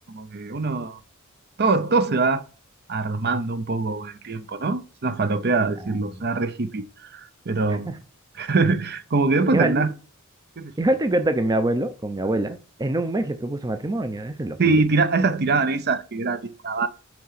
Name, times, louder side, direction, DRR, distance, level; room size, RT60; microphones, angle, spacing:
voice 1, 0.1-1.0 1.6-2.4 2.9-7.9 8.4-9.9 10.6-10.7 14.6-16.9, right 3 dB, 50° right, 0.7 m, -23 dB
voice 2, 9.5-9.9 10.8-14.6, right 1 dB, 20° right, 0.5 m, -24 dB
6.0 x 4.9 x 5.7 m
head